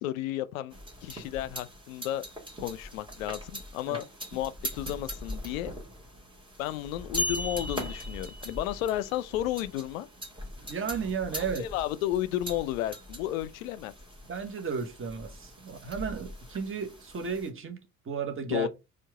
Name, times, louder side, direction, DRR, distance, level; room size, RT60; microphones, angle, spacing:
voice 1, 0.0-2.2 2.6-4.0 4.3-5.7 6.6-10.1 11.6-13.9 18.5-18.7, left 13 dB, 70° left, 0.5 m, -32 dB
sound 1, 0.7-17.5, equal, 10° right, 1.6 m, -42 dB
sound 2, 7.2-9.0, left 1 dB, 10° left, 0.7 m, -35 dB
voice 2, 10.6-11.6 14.2-17.8 18.0-18.7, right 6 dB, 30° right, 1.1 m, -34 dB
4.5 x 2.4 x 4.6 m
figure-of-eight pair, 50°, 43 cm